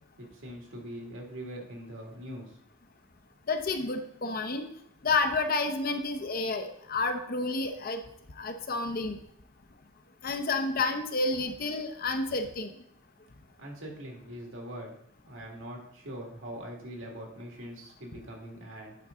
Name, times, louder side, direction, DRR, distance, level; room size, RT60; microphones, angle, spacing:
voice 1, 0.2-2.5 13.6-15.0 15.3-19.0, equal, 75° right, 0 dB, 2.1 m, -42 dB
voice 2, 3.5-4.6 5.0-8.0 8.4-9.2 10.2-12.7, left 3 dB, 50° left, 6 dB, 0.8 m, -30 dB
9.1 x 5.4 x 3.7 m, 0.71 s
head